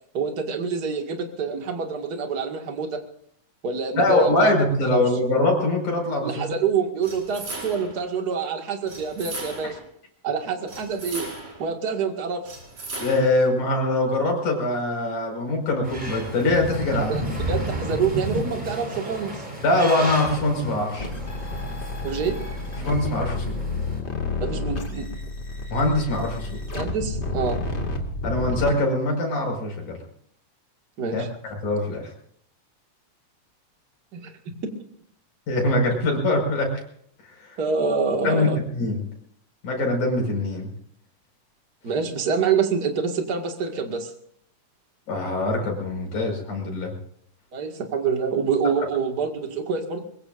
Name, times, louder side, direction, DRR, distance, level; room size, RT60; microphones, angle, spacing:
voice 1, 0.1-3.0 3.6-4.5 4.8-5.0 6.2-9.8 10.2-11.3 11.6-12.6 17.1-19.4 22.0-22.4 24.4-25.1 26.7-27.6 31.0-31.3 34.1-34.3 37.6-38.6 41.8-44.1 47.5-50.0, right 5 dB, 35° right, 3 dB, 2.2 m, -26 dB
voice 2, 4.0-6.5 9.6-9.7 13.0-17.1 19.6-21.1 22.8-23.5 25.7-26.6 28.2-30.0 31.1-31.2 31.6-32.1 35.5-36.7 37.3-37.6 38.2-39.1 39.6-40.7 45.1-46.9, left 2 dB, 70° left, 1 dB, 7.0 m, -23 dB
sound 1, 7.0-8.0 8.9-9.8 10.7-11.7 12.4-13.4, right 2 dB, 50° right, 6.6 m, -36 dB
sound 2, 15.8-24.0, right 1 dB, 15° right, 4.5 m, -32 dB
sound 3, 21.0-28.7, left 2 dB, 25° left, 1.9 m, -30 dB
24.0 x 21.5 x 2.6 m, 0.68 s
omnidirectional pair, 3.6 m